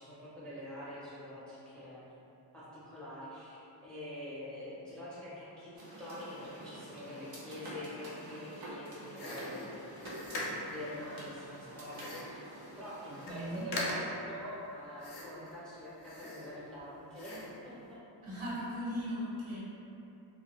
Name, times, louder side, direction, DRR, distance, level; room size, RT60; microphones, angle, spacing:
voice 1, 0.0-2.0 2.5-5.7 6.0-9.7 10.6-12.4 12.8-18.0, left 1 dB, ahead, -10 dB, 0.4 m, -45 dB
sound 1, 5.8-13.6, right 1 dB, 50° right, 0.5 m, -48 dB
sound 2, 9.2-10.8 11.9-12.4 12.9-13.0 13.1-13.4 13.7-14.3 15.0-15.5 16.0-16.8 17.2-17.6, left 1 dB, 55° left, 0.5 m, -40 dB
voice 2, 13.2-13.7 18.2-19.6, equal, 85° right, -9 dB, 1.0 m, -38 dB
2.2 x 2.1 x 2.8 m, 2.8 s
wide cardioid pair, 165°, 47 cm